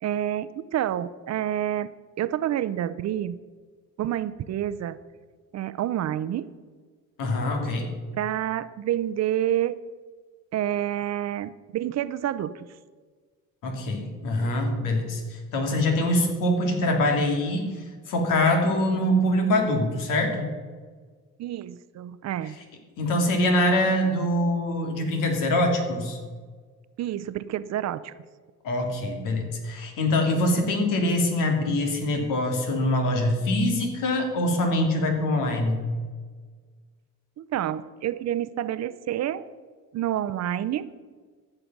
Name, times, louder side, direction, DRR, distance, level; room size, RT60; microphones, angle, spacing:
voice 1, 0.0-1.9 2.2-3.4 4.0-5.0 5.5-6.5 8.2-9.8 10.5-12.7 21.4-22.6 27.0-28.1 37.4-39.5 39.9-40.9, right 11 dB, 55° right, 15 dB, 0.6 m, -28 dB
voice 2, 7.2-7.9 13.6-17.8 18.1-20.5 23.0-26.2 28.6-35.8, left 1 dB, 85° left, 3 dB, 2.5 m, -24 dB
14.0 x 6.7 x 6.0 m, 1.5 s
cardioid pair, 110°, 31 cm